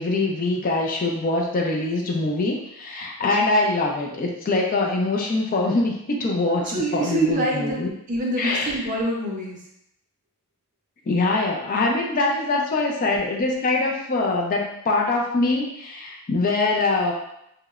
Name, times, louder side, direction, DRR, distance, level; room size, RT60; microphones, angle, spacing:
voice 1, 0.0-7.9 8.4-8.8 11.1-17.1, left 2 dB, 40° left, 0 dB, 0.3 m, -23 dB
voice 2, 6.6-7.8 8.1-9.6, right 1 dB, 35° right, -2 dB, 0.5 m, -25 dB
2.9 x 2.0 x 2.3 m, 0.78 s
head